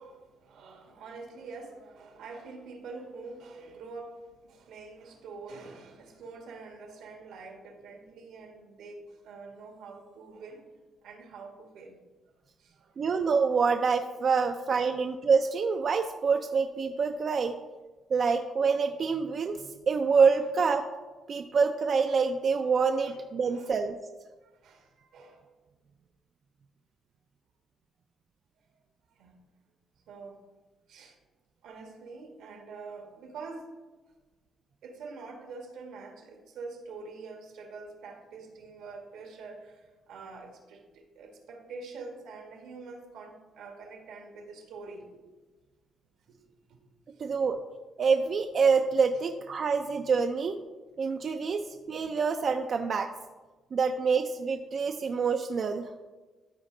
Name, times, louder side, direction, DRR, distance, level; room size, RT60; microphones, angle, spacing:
voice 1, 0.0-10.7 11.0-12.0 12.6-13.0 14.8-15.0 23.0-23.8 24.4-25.5 29.2-29.4 30.1-30.4 30.9-31.2 31.6-33.7 34.8-45.2 46.3-46.4 46.7-46.8 47.1-47.3, right 4 dB, 85° right, 3 dB, 1.6 m, -46 dB
voice 2, 13.0-17.6 18.1-20.8 21.3-24.0 47.2-47.6 48.0-50.6 51.0-53.1 53.7-55.9, right 5 dB, 50° right, 5 dB, 0.5 m, -26 dB
13.0 x 4.4 x 3.8 m, 1.3 s
cardioid pair, 90°, 0 cm